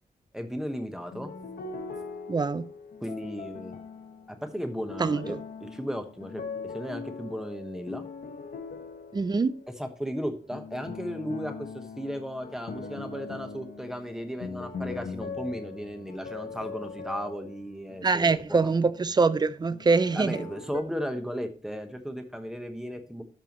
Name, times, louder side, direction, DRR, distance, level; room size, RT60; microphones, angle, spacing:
voice 1, 0.3-1.3 3.0-3.8 4.3-8.0 9.8-18.7 20.1-23.2, equal, 5° right, 1.0 m, -35 dB
sound 1, 1.0-10.0 10.5-19.4 19.7-20.8, left 4 dB, 80° left, 1.2 m, -41 dB
voice 2, 2.3-2.7 5.0-5.2 9.1-9.5 18.0-20.4, right 4 dB, 25° right, 0.4 m, -24 dB
12.5 x 5.6 x 3.0 m
wide cardioid pair, 165°, 16 cm